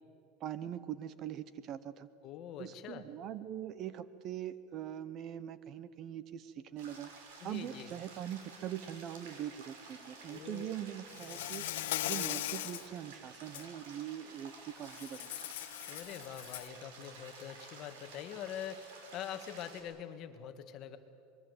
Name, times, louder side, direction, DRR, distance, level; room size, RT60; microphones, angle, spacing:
voice 1, 0.4-2.1 2.6-15.5, right 10 dB, 35° right, 15 dB, 0.8 m, -42 dB
voice 2, 2.2-3.1 7.4-7.9 10.3-10.8 15.9-21.0, left 9 dB, 40° left, 8 dB, 1.5 m, -44 dB
sound 1, 6.8-19.8, right 4 dB, 85° right, 5.4 m, -52 dB
Insect, 11.1-12.9 13.3-13.6 14.9-16.8, left 14 dB, 90° left, 1.1 m, -39 dB
25.0 x 21.5 x 8.0 m, 2.6 s
supercardioid pair, 160°, 0 cm